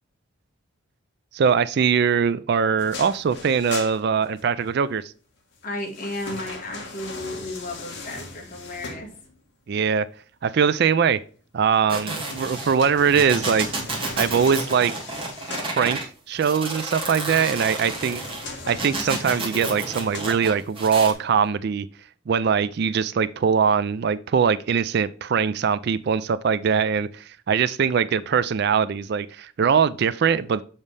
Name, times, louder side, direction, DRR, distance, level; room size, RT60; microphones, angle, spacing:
voice 1, 1.3-5.1 9.7-10.1 10.4-11.2 11.5-13.7 14.2-14.9 15.8-16.0 16.3-18.2 18.7-21.9 22.3-30.6, right 6 dB, 50° right, 0.3 m, -22 dB
sound 1, 2.8-4.7 5.5-9.5 12.0-15.8 17.3-20.8 21.3-21.4, left 3 dB, 55° left, 1.4 m, -39 dB
voice 2, 5.6-9.1, left 1 dB, 40° left, 1.6 m, -33 dB
sound 2, 11.9-16.0 16.4-21.1, right 2 dB, 25° right, 1.5 m, -31 dB
7.2 x 5.3 x 3.3 m
head